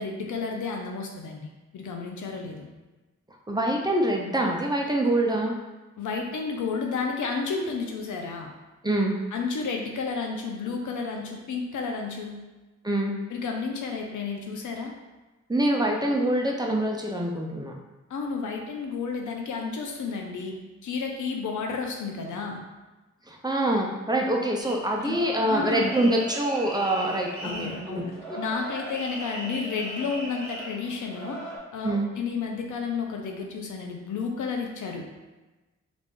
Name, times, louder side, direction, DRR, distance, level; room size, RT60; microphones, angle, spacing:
voice 1, 0.0-2.7 6.0-8.5 9.3-12.4 13.3-14.9 18.1-20.6 20.8-22.6 25.0-25.2 25.5-25.9 27.4-31.4 31.7-35.1, left 5 dB, 90° left, 2 dB, 0.6 m, -31 dB
voice 2, 3.5-5.6 8.8-9.2 12.8-13.1 15.5-17.7 23.3-28.4 31.8-32.1, right 1 dB, 15° right, 0 dB, 0.5 m, -25 dB
sound 1, 24.6-31.6, right 1 dB, 5° left, 1.3 m, -38 dB
3.3 x 2.4 x 3.6 m, 1.2 s
cardioid pair, 70°, 30 cm